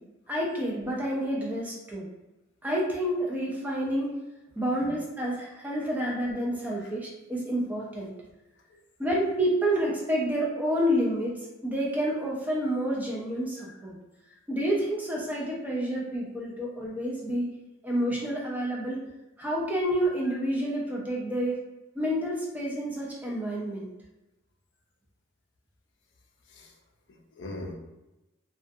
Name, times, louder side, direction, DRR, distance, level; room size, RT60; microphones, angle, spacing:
voice 1, 0.3-2.1 2.6-4.1 4.6-8.1 9.0-13.9 14.5-17.5 17.8-19.0 19.4-21.6 21.9-23.9, equal, 10° right, -4 dB, 0.5 m, -29 dB
voice 2, 27.1-27.7, left 1 dB, 60° left, 0 dB, 0.5 m, -42 dB
2.4 x 2.2 x 2.5 m, 0.98 s
head